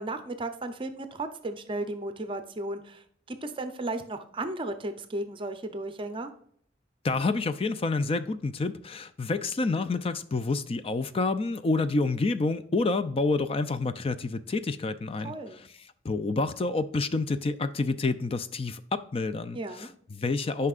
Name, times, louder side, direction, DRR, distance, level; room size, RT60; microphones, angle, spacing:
voice 1, 0.0-6.3 15.2-15.6 19.5-19.9, right 2 dB, 30° right, 0.6 m, -35 dB
voice 2, 7.0-15.7 16.0-20.7, left 3 dB, 30° left, 0.4 m, -28 dB
9.6 x 5.6 x 2.4 m
head